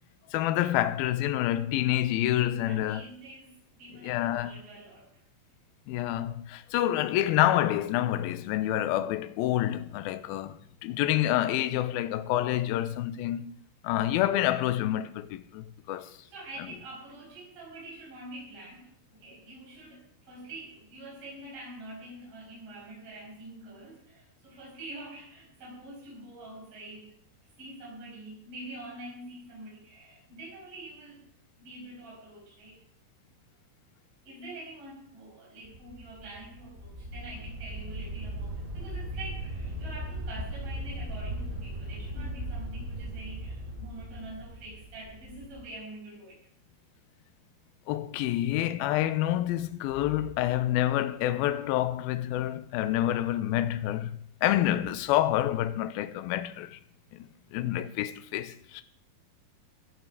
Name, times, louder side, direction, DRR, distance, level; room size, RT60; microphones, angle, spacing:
voice 1, 0.3-3.1 4.0-4.5 5.9-13.5 13.8-16.1 47.9-56.8 57.1-58.8, left 13 dB, 80° left, 2.3 m, -28 dB
voice 2, 2.6-5.1 15.9-27.2 27.6-31.2 31.6-32.8 34.2-46.4, right 1 dB, 35° right, 6.4 m, -45 dB
sound 1, 35.6-45.6, right 1 dB, 15° right, 3.3 m, -38 dB
16.0 x 11.0 x 4.8 m
omnidirectional pair, 4.8 m